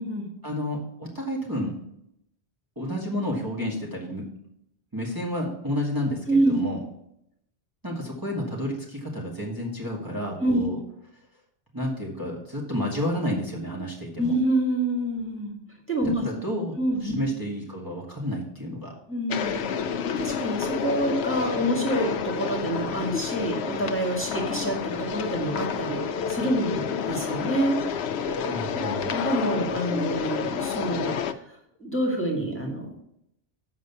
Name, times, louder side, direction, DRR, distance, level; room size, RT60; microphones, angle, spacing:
voice 1, 0.4-1.7 2.8-4.2 4.9-6.8 7.8-10.8 11.7-14.3 16.2-16.7 17.0-18.9 28.4-29.1, equal, 20° right, -3 dB, 1.6 m, -30 dB
voice 2, 6.3-6.6 10.4-10.7 14.2-15.5 15.9-16.2 16.8-17.2 19.1-19.8 20.2-27.8 29.0-33.0, right 1 dB, 10° left, 0 dB, 1.8 m, -27 dB
sound 1, 19.3-31.3, left 7 dB, 80° left, 0.9 m, -29 dB
7.6 x 5.7 x 6.9 m, 0.76 s
omnidirectional pair, 1.1 m